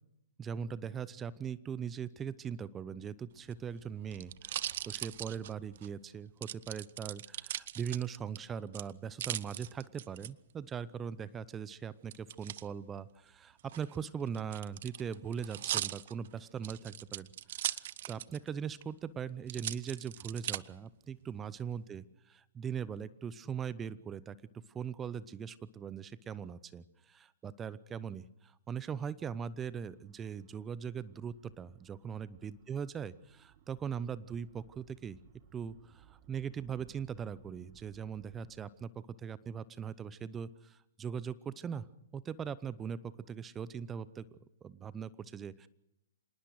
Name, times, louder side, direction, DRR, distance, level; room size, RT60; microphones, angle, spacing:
voice 1, 0.4-35.2 35.5-41.9 42.1-44.2 44.6-45.7, right 7 dB, 15° right, 18 dB, 0.8 m, -40 dB
sound 1, 3.4-5.9 6.4-8.4 8.7-10.3 12.1-12.6 13.6-18.5 18.8-18.9 19.5-20.6 21.2-21.8, right 12 dB, 55° right, 0.7 m, -39 dB
sound 2, 29.6-38.6, right 10 dB, 35° right, 1.5 m, -63 dB
26.5 x 19.5 x 6.4 m, 0.84 s
hypercardioid pair, 125°, 0 cm